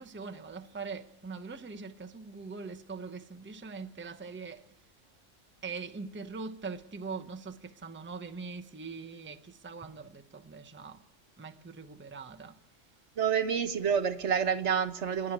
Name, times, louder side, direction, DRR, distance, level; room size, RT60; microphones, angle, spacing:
voice 1, 0.0-4.6 5.6-11.0 11.4-12.6, right 4 dB, 10° right, 0.7 m, -42 dB
voice 2, 13.2-15.3, right 7 dB, 70° right, 1.4 m, -28 dB
29.5 x 10.0 x 8.9 m
omnidirectional pair, 1.3 m